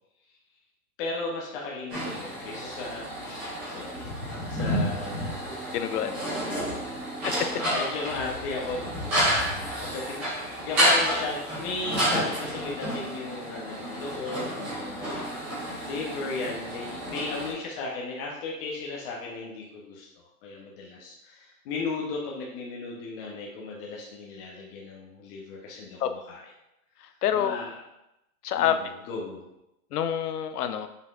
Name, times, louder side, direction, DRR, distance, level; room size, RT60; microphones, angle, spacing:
voice 1, 1.0-5.3 5.9-7.1 7.7-15.3 15.8-26.4 27.3-27.8 28.6-29.4, left 3 dB, 35° left, -2 dB, 0.8 m, -36 dB
sound 1, 1.9-17.5, equal, 5° right, 0.3 m, -30 dB
voice 2, 5.7-6.1 7.2-7.3 26.0-26.1 27.2-27.6 28.4-28.9 29.9-30.9, left 9 dB, 80° left, 10 dB, 0.6 m, -26 dB
5.5 x 3.6 x 2.4 m, 0.87 s
hypercardioid pair, 140°, 45 cm